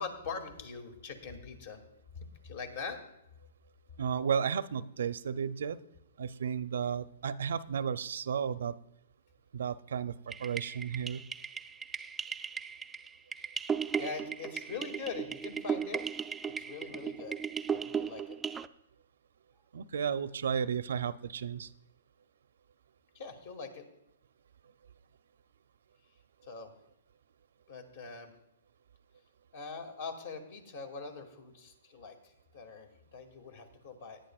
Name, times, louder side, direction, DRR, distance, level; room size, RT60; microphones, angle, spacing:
voice 1, 0.0-1.8 2.4-3.0 13.4-13.5 14.0-16.1 16.5-17.4 17.7-18.4 23.1-23.9 26.4-26.7 27.7-28.3 29.5-34.2, left 5 dB, 55° left, 6 dB, 2.3 m, -43 dB
voice 2, 4.0-5.8 6.2-8.7 9.5-11.2 19.7-21.7, right 7 dB, 75° right, 13 dB, 0.6 m, -33 dB
sound 1, 10.3-18.7, right 6 dB, 10° right, 0.4 m, -36 dB
18.0 x 10.5 x 2.4 m, 0.86 s
hypercardioid pair, 145°, 0 cm